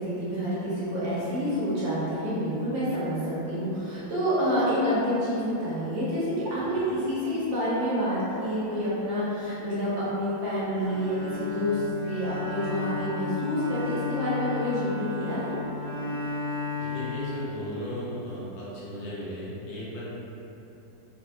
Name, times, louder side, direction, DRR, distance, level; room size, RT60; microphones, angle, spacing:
voice 1, 0.0-15.6, equal, 80° right, -9 dB, 1.7 m, -28 dB
Bowed string instrument, 10.8-17.9, left 3 dB, ahead, 0.9 m, -33 dB
voice 2, 16.8-20.1, equal, 75° left, -8 dB, 1.5 m, -36 dB
3.8 x 2.6 x 2.2 m, 3.0 s
omnidirectional pair, 2.0 m